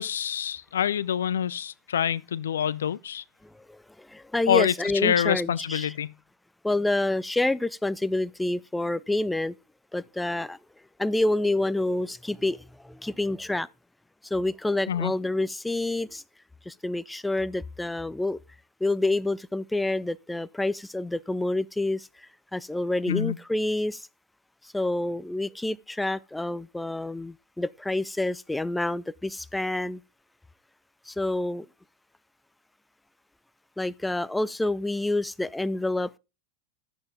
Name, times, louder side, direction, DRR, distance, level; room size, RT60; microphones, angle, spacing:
voice 1, 0.0-3.2 4.5-4.7 5.0-6.1 14.9-15.1 23.1-23.4, left 9 dB, 70° left, 0.5 m, -26 dB
voice 2, 3.4-5.9 6.6-9.6 9.9-10.6 11.0-13.7 14.2-16.2 16.7-18.4 18.8-24.1 24.6-30.0 31.1-31.7 33.8-36.2, left 2 dB, 5° left, 0.5 m, -28 dB
12.0 x 8.0 x 3.6 m
figure-of-eight pair, 85°, 0 cm